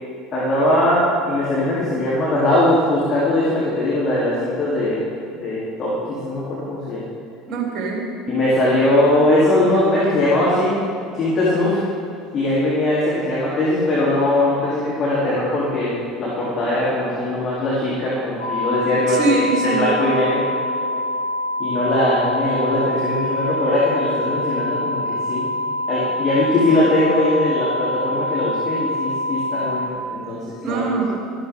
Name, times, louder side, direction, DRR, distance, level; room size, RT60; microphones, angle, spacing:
voice 1, 0.3-5.0 5.3-7.0 8.3-10.8 11.1-11.8 12.3-19.2 19.6-20.4 21.6-25.5 25.9-30.8, left 1 dB, 40° left, -8 dB, 3.2 m, -20 dB
voice 2, 7.5-8.1 19.1-19.9 30.6-31.1, right 3 dB, 40° right, -2 dB, 3.5 m, -22 dB
sound 1, 18.4-29.9, left 1 dB, 75° left, 1.4 m, -25 dB
13.5 x 11.5 x 3.7 m, 2.4 s
figure-of-eight pair, 65°, 0 cm